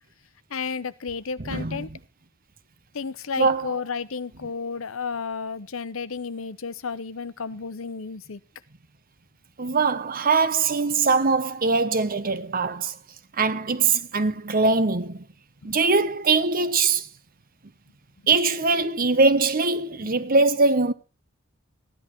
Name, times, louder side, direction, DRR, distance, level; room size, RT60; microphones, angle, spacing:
voice 1, 0.5-1.9 2.9-8.4 15.7-15.8 20.0-20.2, left 5 dB, 80° left, 0.9 m, -32 dB
voice 2, 1.5-1.9 3.4-3.7 9.6-13.0 13.4-15.2 15.6-17.1 18.3-20.9, right 4 dB, 45° right, 1.1 m, -22 dB
15.0 x 10.5 x 4.4 m
head